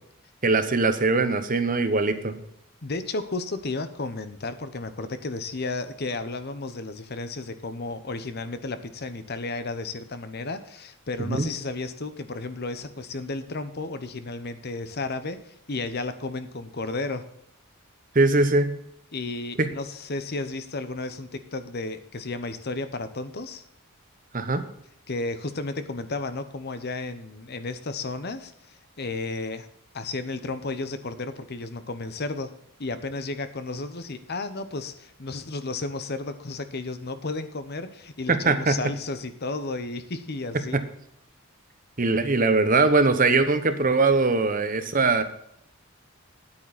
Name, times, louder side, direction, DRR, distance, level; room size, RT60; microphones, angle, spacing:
voice 1, 0.4-2.4 11.4-11.5 18.1-18.8 19.6-19.7 24.3-24.6 38.3-38.8 40.7-40.8 42.0-45.2, right 3 dB, 40° right, 10 dB, 1.0 m, -21 dB
voice 2, 2.8-17.2 19.1-23.6 25.1-29.7 29.9-32.5 32.8-40.8, left 3 dB, 50° left, 11 dB, 0.9 m, -33 dB
10.5 x 8.8 x 4.1 m, 0.72 s
head